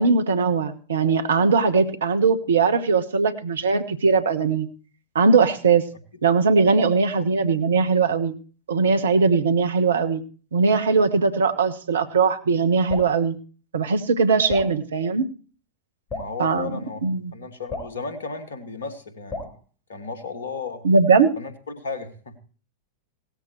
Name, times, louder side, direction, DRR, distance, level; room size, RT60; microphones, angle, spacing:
voice 1, 0.0-4.7 5.1-5.9 6.2-8.3 8.7-10.2 10.5-13.3 13.7-15.2 16.4-16.7 17.0-17.3 20.8-21.3, right 4 dB, 65° right, 10 dB, 1.3 m, -20 dB
Drip, 12.9-13.2 14.5-14.7 16.1-16.4 17.7-18.0 19.3-19.6, left 2 dB, 20° left, 4.1 m, -33 dB
voice 2, 16.1-19.5 19.9-20.9 21.4-22.3, left 4 dB, 70° left, 7 dB, 2.3 m, -34 dB
18.0 x 13.5 x 3.2 m, 0.40 s
figure-of-eight pair, 90°, 0 cm